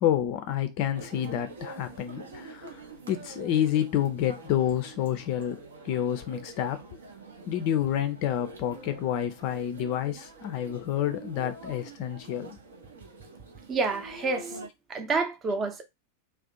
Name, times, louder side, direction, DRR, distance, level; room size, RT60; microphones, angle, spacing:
voice 1, 0.0-5.6 5.8-6.8 7.5-12.6, left 10 dB, 45° left, 0.4 m, -29 dB
sound 1, 0.9-14.7, right 3 dB, 65° right, 0.6 m, -46 dB
voice 2, 13.7-14.6 14.9-15.8, right 3 dB, 25° right, 0.6 m, -28 dB
2.5 x 2.0 x 2.6 m
figure-of-eight pair, 90°, 0 cm